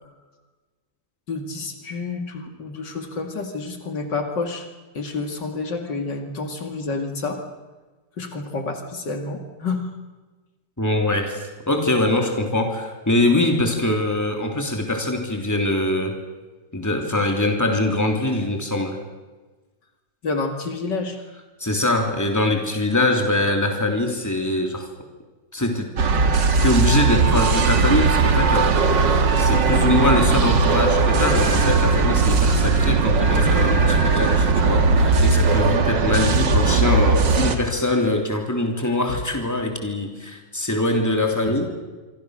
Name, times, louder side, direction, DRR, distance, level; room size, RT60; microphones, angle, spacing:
voice 1, 1.3-4.7 4.9-7.4 8.2-9.9 20.2-21.2 39.1-39.2, left 3 dB, 70° left, 5 dB, 2.8 m, -29 dB
voice 2, 10.8-16.1 16.7-19.0 21.6-24.9 25.5-25.9 26.6-41.7, left 1 dB, 10° left, 3 dB, 3.2 m, -23 dB
sound 1, 26.0-37.6, right 4 dB, 75° right, 2.5 m, -18 dB
26.0 x 25.0 x 6.5 m, 1.2 s
omnidirectional pair, 2.0 m